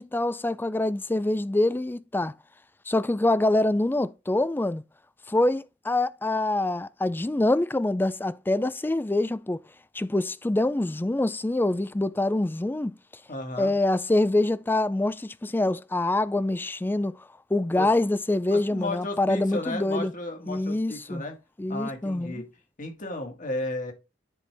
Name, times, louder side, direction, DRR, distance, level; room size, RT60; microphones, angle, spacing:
voice 1, 0.0-2.3 2.9-4.8 5.3-9.6 9.9-12.9 13.6-17.1 17.5-20.1 20.5-21.2 21.6-22.4, left 2 dB, 10° left, 0.3 m, -25 dB
voice 2, 13.3-13.7 17.8-18.1 18.5-21.4 21.7-22.5 22.8-23.9, left 2 dB, 45° left, 1.9 m, -34 dB
9.9 x 4.4 x 3.4 m
head